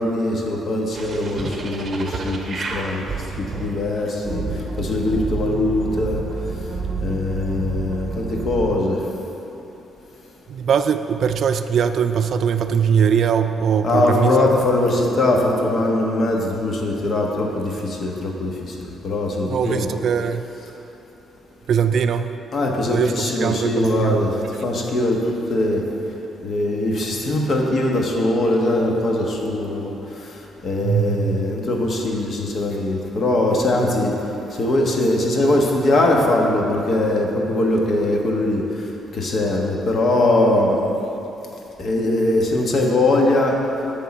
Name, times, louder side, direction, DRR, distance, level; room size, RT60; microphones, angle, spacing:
voice 1, 0.0-3.0 3.6-6.2 7.0-9.0 13.8-19.9 22.5-24.4 24.6-25.8 26.4-34.1 34.5-38.9 39.1-40.8 41.8-43.5, left 2 dB, 50° left, 0 dB, 1.2 m, -21 dB
sound 1, 0.9-8.8, right 4 dB, 40° right, 0.8 m, -29 dB
voice 2, 10.5-14.4 19.5-20.4 21.7-22.3 22.9-24.2 30.8-31.4, right 7 dB, 60° right, 9 dB, 0.3 m, -21 dB
9.3 x 3.7 x 7.1 m, 3.0 s
cardioid pair, 90°, 0 cm